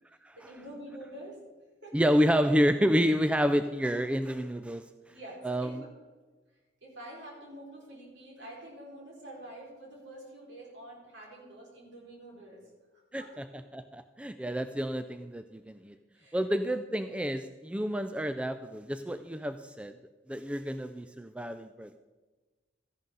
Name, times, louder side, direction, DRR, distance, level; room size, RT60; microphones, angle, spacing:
voice 1, 0.4-1.4 1.8-2.0 5.1-5.8 6.8-13.3 16.1-16.4, right 1 dB, 65° right, -3 dB, 4.7 m, -47 dB
voice 2, 1.9-4.8 5.4-5.8 13.1-13.5 13.7-15.9 16.3-19.9 20.3-22.0, equal, 5° right, 9 dB, 0.3 m, -29 dB
14.0 x 11.0 x 3.9 m, 1.3 s
head